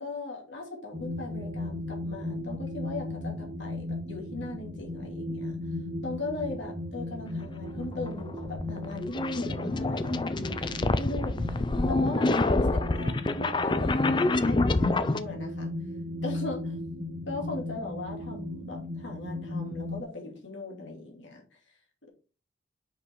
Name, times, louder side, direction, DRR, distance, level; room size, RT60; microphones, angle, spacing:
voice 1, 0.0-5.6 6.0-11.5 11.9-15.7 16.2-16.8 17.3-21.4, left 2 dB, 85° left, 0 dB, 2.7 m, -38 dB
sound 1, 0.9-20.0, left 1 dB, 25° right, 1.7 m, -36 dB
sound 2, 7.8-15.2, left 2 dB, 25° left, 0.4 m, -27 dB
5.9 x 5.5 x 4.6 m, 0.34 s
head